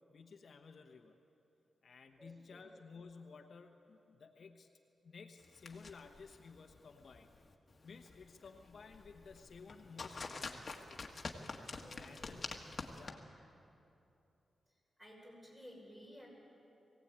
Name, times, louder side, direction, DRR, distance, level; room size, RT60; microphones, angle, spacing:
voice 1, 0.1-1.2 1.8-4.7 5.0-7.3 7.8-11.1 11.9-12.4 12.9-13.2, left 5 dB, 55° left, 4 dB, 1.1 m, -55 dB
voice 2, 2.2-2.8 11.7-12.4 15.0-16.3, equal, 10° right, -2 dB, 6.0 m, -56 dB
sound 1, 5.4-13.1, left 3 dB, 40° left, 1.6 m, -48 dB
22.0 x 17.0 x 8.8 m, 2.8 s
wide cardioid pair, 135°, 0 cm